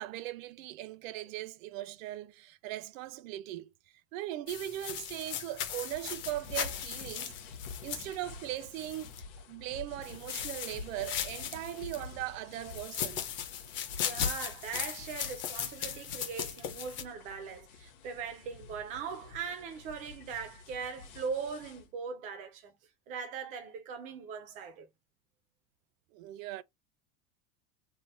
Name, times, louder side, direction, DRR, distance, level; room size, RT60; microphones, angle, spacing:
voice 1, 0.0-3.7 4.1-7.3 7.8-9.2 9.5-13.2 15.9-16.0 26.1-26.6, right 14 dB, 75° right, 0.6 m, -39 dB
sound 1, 4.5-9.2 10.0-12.1 12.7-17.0, left 9 dB, 30° left, 0.5 m, -38 dB
sound 2, 5.9-21.9, left 4 dB, 55° left, 1.1 m, -47 dB
voice 2, 14.0-22.7 23.1-24.9, right 6 dB, 20° right, 0.3 m, -40 dB
3.3 x 2.1 x 4.2 m
supercardioid pair, 170°, 41 cm